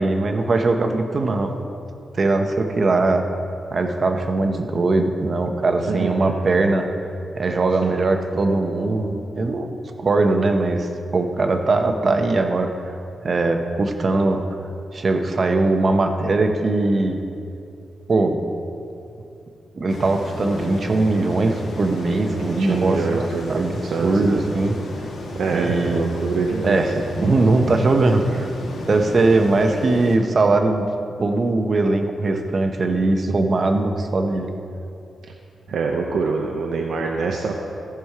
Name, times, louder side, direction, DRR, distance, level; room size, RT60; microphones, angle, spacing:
voice 1, 0.0-1.5 2.1-3.3 3.7-6.9 7.3-9.7 10.0-12.7 13.2-14.4 14.9-17.2 18.1-18.4 19.7-23.7 24.0-24.8 25.5-26.1 26.6-28.5 28.9-30.9 31.2-34.5, right 2 dB, 40° right, 5 dB, 0.9 m, -20 dB
voice 2, 5.9-6.4 7.8-7.9 22.4-24.5 25.3-27.1 35.7-37.5, right 4 dB, 80° right, 1 dB, 0.8 m, -25 dB
sound 1, 19.9-30.2, left 2 dB, 75° left, 1.8 m, -34 dB
14.5 x 6.1 x 4.9 m, 2.6 s
wide cardioid pair, 125°, 0 cm